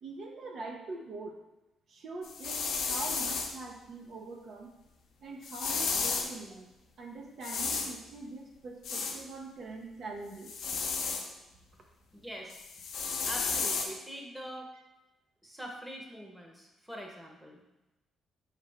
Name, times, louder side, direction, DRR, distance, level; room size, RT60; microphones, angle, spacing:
voice 1, 0.0-1.4 1.9-4.7 5.2-6.7 7.0-10.5, right 3 dB, 60° right, 1 dB, 0.6 m, -43 dB
sound 1, 2.2-3.5 5.4-6.3 7.4-7.9 8.8-9.2 10.4-11.3 12.5-13.9, left 5 dB, 70° left, 0.6 m, -33 dB
voice 2, 12.1-12.6 13.0-14.7 15.4-17.6, equal, 5° right, 0 dB, 0.9 m, -44 dB
4.6 x 3.2 x 3.4 m, 0.99 s
cardioid pair, 90°, 0 cm